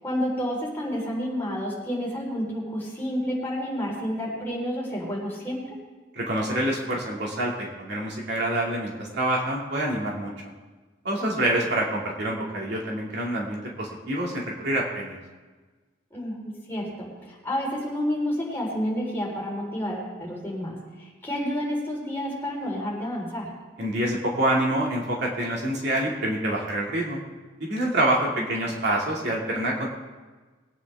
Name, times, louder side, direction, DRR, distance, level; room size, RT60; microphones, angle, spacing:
voice 1, 0.0-5.8 11.2-11.3 11.6-11.7 16.1-23.5 28.3-28.4, equal, 10° left, -5 dB, 4.4 m, -30 dB
voice 2, 6.1-10.3 11.0-15.2 23.8-27.2 27.6-29.9, right 1 dB, 55° right, -3 dB, 2.5 m, -26 dB
22.0 x 9.7 x 3.6 m, 1.3 s
head